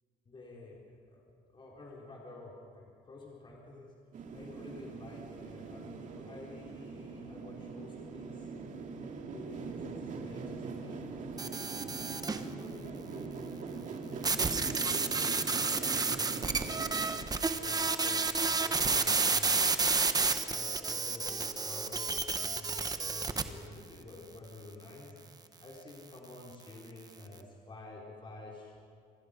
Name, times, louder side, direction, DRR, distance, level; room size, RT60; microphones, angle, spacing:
voice 1, 0.2-1.3 1.5-3.9 4.3-8.5 9.2-10.5 10.8-11.3 12.0-16.9 17.5-19.9 20.4-25.2 25.6-28.7, left 2 dB, 30° left, -3 dB, 4.2 m, -50 dB
sound 1, 4.1-17.2, right 4 dB, 50° right, 2.3 m, -42 dB
sound 2, 11.4-12.5 14.2-23.4, right 4 dB, 20° right, 1.2 m, -30 dB
27.5 x 21.5 x 5.2 m, 2.4 s
cardioid pair, 110°, 17 cm